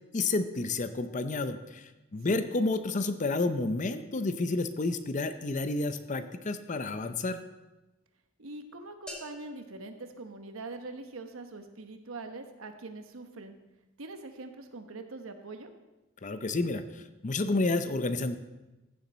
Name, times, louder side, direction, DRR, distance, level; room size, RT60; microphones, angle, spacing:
voice 1, 0.1-7.4 16.2-16.8 17.2-18.4, left 3 dB, 35° left, 10 dB, 0.6 m, -30 dB
voice 2, 8.4-13.5 14.0-15.7, right 3 dB, 85° right, 7 dB, 1.1 m, -43 dB
sound 1, 9.1-11.0, equal, 5° left, 1.4 m, -49 dB
15.0 x 7.1 x 4.2 m, 1.0 s
head